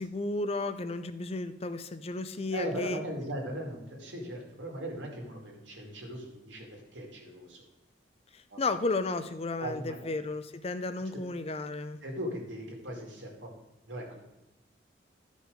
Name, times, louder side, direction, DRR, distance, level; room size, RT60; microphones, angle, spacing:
voice 1, 0.0-3.0 8.6-12.0, left 2 dB, 35° left, 10 dB, 0.5 m, -33 dB
voice 2, 2.5-7.6 8.5-8.6 9.6-10.1 11.1-11.2 12.0-13.5 13.9-14.2, equal, 90° right, 0 dB, 2.4 m, -38 dB
12.5 x 5.3 x 5.1 m, 0.96 s
head